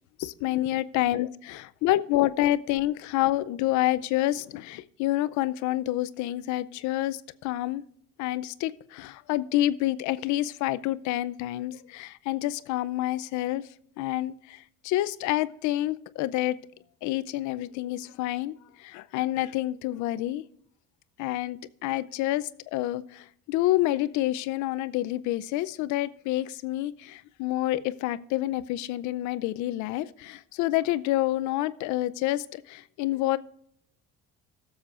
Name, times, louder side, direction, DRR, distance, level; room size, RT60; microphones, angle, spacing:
voice 1, 0.2-7.8 8.2-13.6 14.0-16.6 17.0-20.4 21.2-33.4, left 15 dB, 70° left, 0.6 m, -28 dB
17.5 x 7.3 x 2.5 m
cardioid pair, 115°, 30 cm